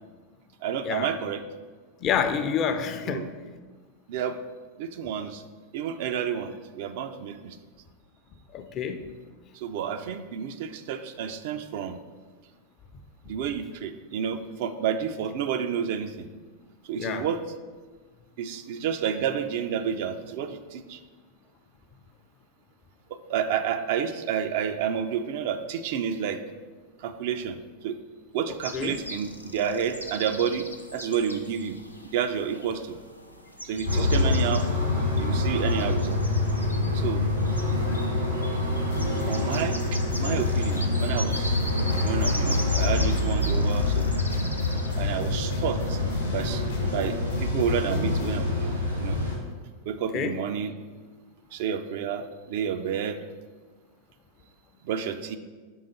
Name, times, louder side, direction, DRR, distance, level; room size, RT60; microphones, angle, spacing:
voice 1, 0.6-1.5 3.1-3.3 4.1-4.4 4.8-5.4 5.7-7.6 9.5-12.0 13.3-16.3 16.8-17.4 18.4-21.0 23.1-26.4 27.0-27.6 27.8-28.0 28.3-30.7 30.9-31.8 32.1-33.0 33.6-34.7 35.2-36.2 36.9-37.2 39.3-41.6 42.0-44.1 45.0-46.0 46.3-49.2 49.9-50.7 51.5-53.2 54.8-55.4, right 8 dB, 50° right, 8 dB, 0.4 m, -30 dB
voice 2, 2.0-3.3 8.5-9.0 17.0-17.3 28.7-29.0 34.0-34.4 37.9-38.0 50.1-50.3, left 7 dB, 35° left, 8 dB, 0.5 m, -28 dB
sound 1, 28.6-45.0, left 1 dB, 90° left, 0.5 m, -40 dB
sound 2, 33.8-49.4, left 2 dB, 85° right, 1.8 m, -26 dB
sound 3, 38.9-48.5, left 3 dB, 60° left, 0.8 m, -42 dB
5.4 x 3.6 x 5.1 m, 1.4 s
figure-of-eight pair, 90°, 0 cm